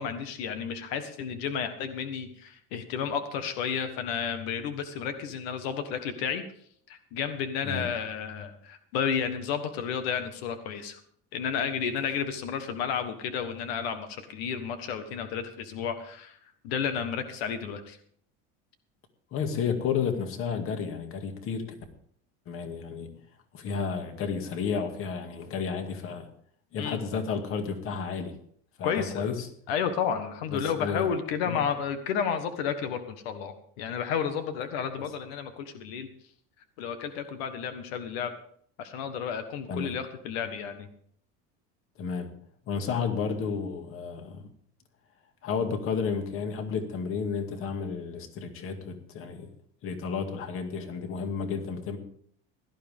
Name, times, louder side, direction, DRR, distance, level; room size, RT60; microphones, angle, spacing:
voice 1, 0.0-6.4 6.9-11.0 11.3-16.4 16.6-18.0 26.8-27.0 28.8-29.3 29.7-36.1 36.8-38.3 38.8-40.9, left 7 dB, 90° left, 8 dB, 1.5 m, -32 dB
voice 2, 19.3-21.7 22.5-23.2 23.5-26.3 26.7-28.4 28.8-29.5 30.5-31.1 31.5-31.6 39.7-40.0 42.0-42.3 42.7-44.4 45.4-49.5 49.8-52.0, left 6 dB, 45° left, 6 dB, 2.2 m, -32 dB
17.0 x 12.5 x 3.6 m, 0.62 s
cardioid pair, 140°, 30 cm